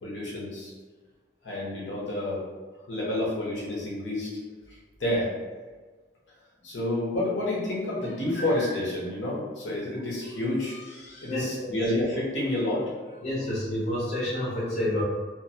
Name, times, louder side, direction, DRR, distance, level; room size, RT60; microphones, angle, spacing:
voice 1, 0.0-0.7 1.4-2.4 2.9-4.3 5.0-5.3 6.6-12.8 13.1-13.2, left 1 dB, 75° left, -6 dB, 0.9 m, -29 dB
voice 2, 11.2-11.9 13.2-15.0, left 1 dB, 35° left, -7 dB, 0.6 m, -29 dB
2.9 x 2.1 x 2.7 m, 1.4 s
head